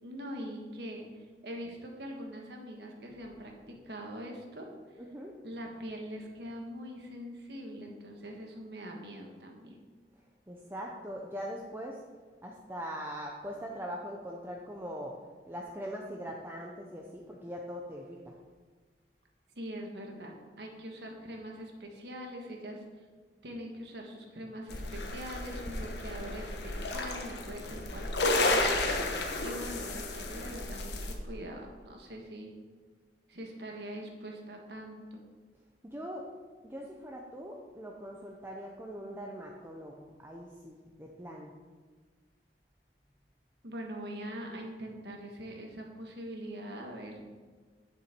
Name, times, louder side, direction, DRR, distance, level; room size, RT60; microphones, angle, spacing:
voice 1, 0.0-4.7 5.4-9.8 19.5-22.8 23.4-28.7 29.4-32.5 33.3-35.2 43.6-47.2, equal, 65° right, 1 dB, 1.5 m, -43 dB
voice 2, 5.0-5.3 10.5-12.0 12.4-15.2 15.5-18.4 35.8-36.3 36.6-41.5, equal, 15° right, -1 dB, 0.7 m, -41 dB
sound 1, 24.7-31.1, left 2 dB, 75° left, 1.2 m, -32 dB
9.5 x 6.9 x 4.5 m, 1.4 s
head